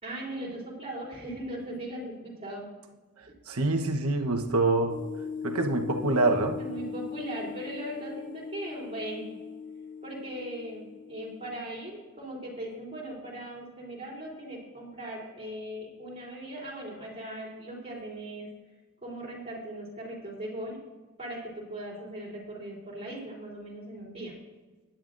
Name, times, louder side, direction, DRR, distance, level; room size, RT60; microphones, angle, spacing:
voice 1, 0.0-2.6 6.6-9.3 10.0-18.5 19.0-20.8 21.2-24.3, right 1 dB, 25° right, -4 dB, 3.5 m, -39 dB
voice 2, 3.5-5.0 5.4-6.6, right 2 dB, 85° right, 3 dB, 1.2 m, -25 dB
sound 1, 4.9-11.6, left 6 dB, 35° left, 0.8 m, -39 dB
16.5 x 10.5 x 2.6 m, 1.3 s
head